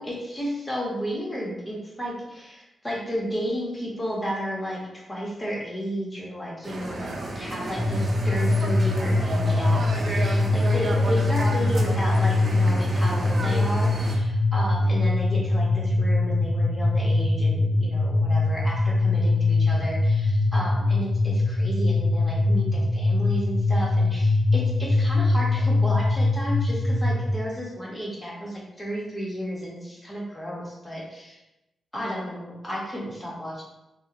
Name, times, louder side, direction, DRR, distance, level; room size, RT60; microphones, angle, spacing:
voice 1, 0.0-31.4 31.9-33.6, equal, 15° left, -4 dB, 1.3 m, -33 dB
sound 1, 6.6-14.2, right 2 dB, 45° right, 0.6 m, -32 dB
sound 2, 7.7-27.3, left 2 dB, 35° left, 0.8 m, -22 dB
5.6 x 2.4 x 3.0 m, 0.94 s
wide cardioid pair, 115°, 0 cm